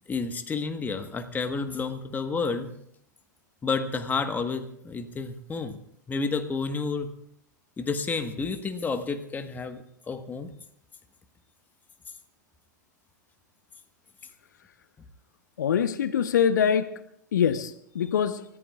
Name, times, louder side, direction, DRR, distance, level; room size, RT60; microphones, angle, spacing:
voice 1, 0.1-2.7 3.6-5.8 6.1-7.1 7.8-10.5, left 4 dB, 15° left, 8 dB, 1.3 m, -30 dB
voice 2, 15.6-16.9 17.3-18.4, left 8 dB, 70° left, 12 dB, 0.9 m, -24 dB
28.5 x 14.5 x 2.4 m, 0.72 s
figure-of-eight pair, 95°, 10 cm